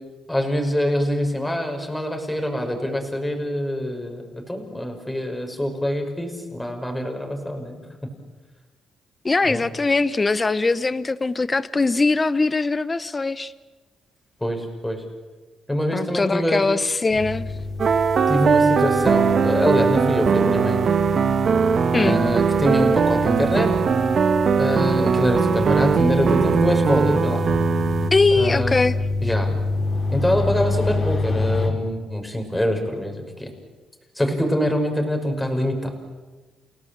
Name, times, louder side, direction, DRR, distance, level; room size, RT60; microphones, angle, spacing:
voice 1, 0.3-7.8 9.5-9.6 14.4-15.0 15.7-16.6 18.3-20.8 21.9-23.8 24.6-27.4 28.3-28.8 29.2-29.6 30.1-33.5 34.2-35.9, equal, 5° left, 3 dB, 5.9 m, -24 dB
voice 2, 9.2-13.5 15.9-17.5 21.9-22.2 28.1-29.0, left 3 dB, 25° left, 15 dB, 0.8 m, -21 dB
sound 1, 17.1-31.7, left 2 dB, 40° left, 5.3 m, -28 dB
sound 2, 17.8-28.1, right 6 dB, 50° right, 1.4 m, -20 dB
29.5 x 17.5 x 8.7 m, 1.2 s
cardioid pair, 90°, 0 cm